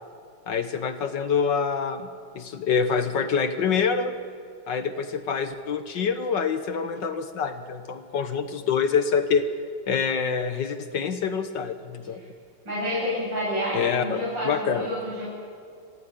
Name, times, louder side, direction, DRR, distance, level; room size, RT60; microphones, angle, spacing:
voice 1, 0.5-2.1 2.3-4.1 4.7-9.5 9.9-12.2 13.7-14.9, left 6 dB, 60° left, 9 dB, 1.7 m, -26 dB
voice 2, 12.7-15.3, equal, 55° right, -7 dB, 8.7 m, -29 dB
24.0 x 15.5 x 9.8 m, 2.2 s
omnidirectional pair, 2.3 m